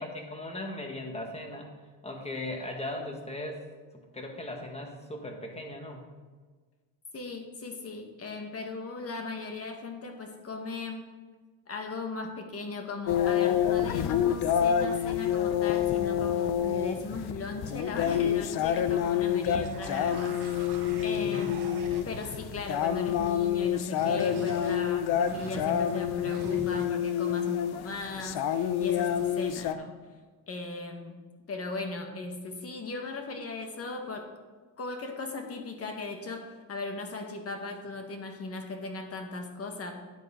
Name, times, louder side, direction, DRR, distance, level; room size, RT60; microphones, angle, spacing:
voice 1, 0.0-1.7 2.0-3.7 3.9-6.1 21.1-21.5, left 1 dB, 15° left, 2 dB, 1.6 m, -38 dB
voice 2, 7.1-11.1 11.7-21.7 22.0-30.0 30.5-31.2 31.5-34.3 34.8-39.9, left 3 dB, 30° left, 4 dB, 1.6 m, -38 dB
sound 1, 13.1-29.7, left 9 dB, 55° left, 0.7 m, -28 dB
sound 2, 19.6-22.3 23.9-26.9, right 6 dB, 60° right, 1.3 m, -43 dB
10.5 x 8.3 x 3.8 m, 1.4 s
cardioid pair, 120°, 45 cm